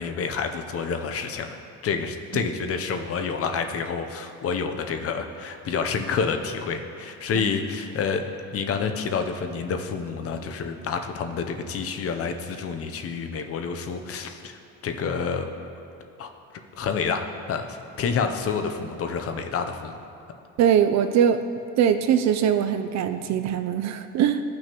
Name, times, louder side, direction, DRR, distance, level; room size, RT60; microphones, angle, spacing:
voice 1, 0.0-1.6 1.8-8.2 8.5-15.5 16.2-16.3 16.8-20.0, left 5 dB, 40° left, 6 dB, 0.6 m, -28 dB
voice 2, 20.6-21.4 21.8-24.4, right 9 dB, 50° right, 10 dB, 0.4 m, -21 dB
14.5 x 6.1 x 2.9 m, 2.8 s
cardioid pair, 135°, 38 cm